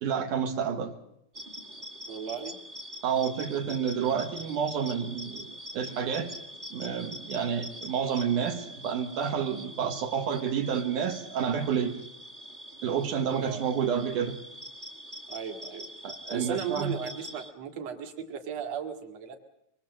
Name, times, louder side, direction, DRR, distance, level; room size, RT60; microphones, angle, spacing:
voice 1, 0.0-0.9 3.0-6.3 6.7-12.0 12.8-14.4 16.0-17.0, right 7 dB, 85° right, 4 dB, 3.1 m, -29 dB
sound 1, 1.3-17.5, equal, 30° right, 0.9 m, -44 dB
voice 2, 2.1-2.6 13.4-13.6 15.3-15.9 16.3-19.4, right 7 dB, 55° right, 4 dB, 3.0 m, -36 dB
24.5 x 21.5 x 7.7 m, 0.77 s
omnidirectional pair, 3.5 m